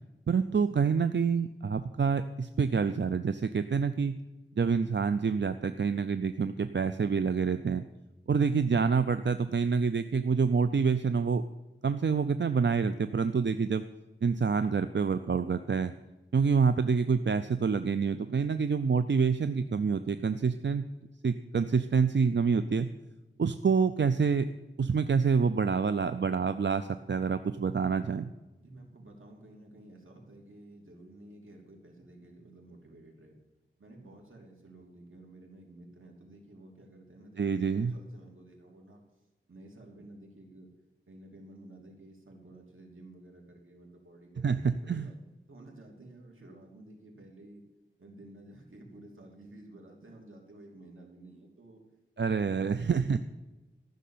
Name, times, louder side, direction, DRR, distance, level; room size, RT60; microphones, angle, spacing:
voice 1, 0.3-4.1 4.6-7.8 8.3-11.4 11.8-13.8 14.2-15.9 16.3-20.8 21.2-22.9 23.4-24.5 24.8-28.3 37.4-37.9 44.4-45.1 52.2-53.2, right 5 dB, 60° right, 11 dB, 0.5 m, -27 dB
voice 2, 28.6-33.4 33.8-39.0 39.5-40.7 41.1-45.2 45.5-47.6 48.0-51.8 52.2-53.2, right 1 dB, 85° right, 0 dB, 2.9 m, -52 dB
14.5 x 6.5 x 8.5 m, 1.1 s
wide cardioid pair, 55°, 20 cm